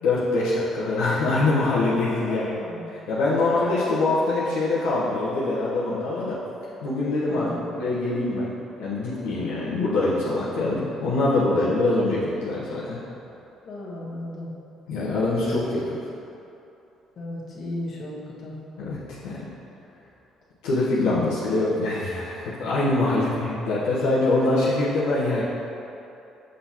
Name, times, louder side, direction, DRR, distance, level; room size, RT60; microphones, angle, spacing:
voice 1, 0.0-2.5 3.1-6.4 6.8-7.5 7.7-8.5 8.8-13.0 14.9-16.0 18.8-19.4 20.6-25.4, left 2 dB, 90° left, -9 dB, 1.0 m, -24 dB
voice 2, 2.3-2.8 3.4-3.5 7.3-7.7 9.6-9.8 13.6-14.5 17.2-18.6 23.1-23.3, left 1 dB, 55° left, -6 dB, 1.5 m, -35 dB
6.5 x 5.8 x 2.9 m, 2.8 s
supercardioid pair, 75°, 0 cm